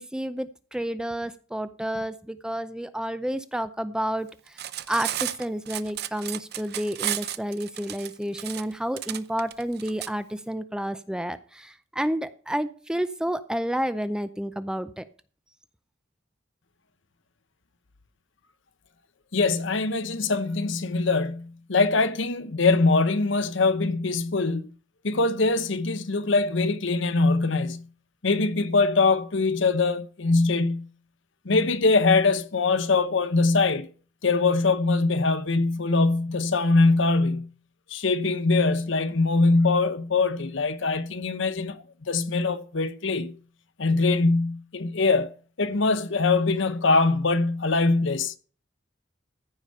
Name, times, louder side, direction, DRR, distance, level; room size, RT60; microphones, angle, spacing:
voice 1, 0.0-15.1, right 1 dB, 5° right, 0.5 m, -30 dB
Cutlery silverware, 4.5-10.1, right 12 dB, 55° right, 0.6 m, -33 dB
voice 2, 19.3-24.7 25.0-27.9 28.2-30.9 31.4-33.9 34.2-37.5 37.9-43.3 43.8-45.3 45.6-48.3, left 3 dB, 65° left, 0.9 m, -23 dB
14.5 x 5.1 x 6.6 m
head